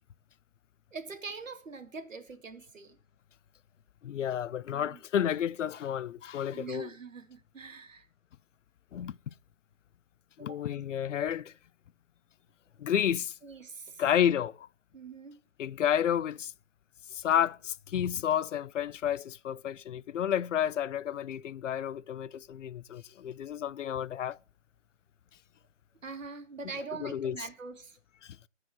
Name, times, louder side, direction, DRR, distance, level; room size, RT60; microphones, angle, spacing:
voice 1, 0.9-3.0 4.7-5.0 6.5-8.1 10.4-10.6 13.4-14.0 14.9-15.4 26.0-28.0, right 4 dB, 80° right, 2.1 m, -43 dB
voice 2, 4.0-6.9 8.9-9.2 10.4-11.5 12.8-13.3 14.0-14.7 15.6-16.5 17.1-24.4 27.0-27.4 28.2-28.4, left 9 dB, 70° left, 0.5 m, -31 dB
13.5 x 4.8 x 7.4 m
hypercardioid pair, 155°, 38 cm